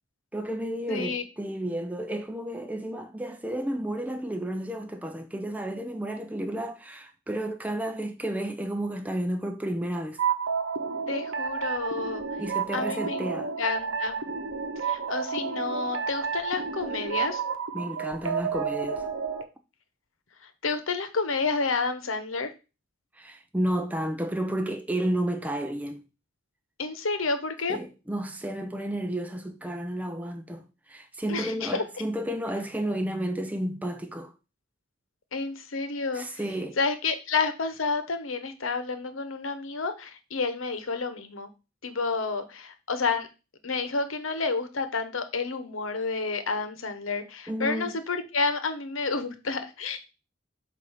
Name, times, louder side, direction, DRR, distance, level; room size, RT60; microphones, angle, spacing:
voice 1, 0.3-10.2 12.4-13.5 17.7-19.1 23.2-26.0 27.7-34.3 36.1-36.8 47.5-47.9, right 1 dB, 10° right, 0.5 m, -32 dB
voice 2, 0.9-1.2 11.1-12.2 12.7-13.3 13.6-14.2 14.8-17.4 20.4-22.5 26.8-27.8 31.3-31.8 35.3-36.4 36.8-41.5 41.8-43.3 43.6-50.0, left 4 dB, 85° left, 0.9 m, -30 dB
sound 1, 10.2-19.4, right 5 dB, 80° right, 0.8 m, -31 dB
7.8 x 2.6 x 5.6 m
head